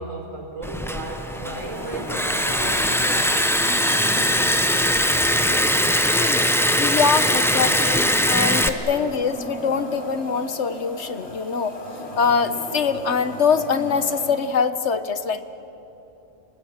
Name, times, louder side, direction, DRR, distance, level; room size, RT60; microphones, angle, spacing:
voice 1, 0.0-3.5, right 2 dB, 80° right, 0 dB, 5.4 m, -34 dB
Liquid, 0.6-8.7, equal, ahead, 0.9 m, -21 dB
sound 1, 1.1-14.3, equal, 50° left, 5.1 m, -37 dB
voice 2, 6.0-11.8 12.2-15.4, left 5 dB, 65° left, 11 dB, 1.3 m, -23 dB
29.5 x 20.5 x 8.8 m, 3.0 s
omnidirectional pair, 1.3 m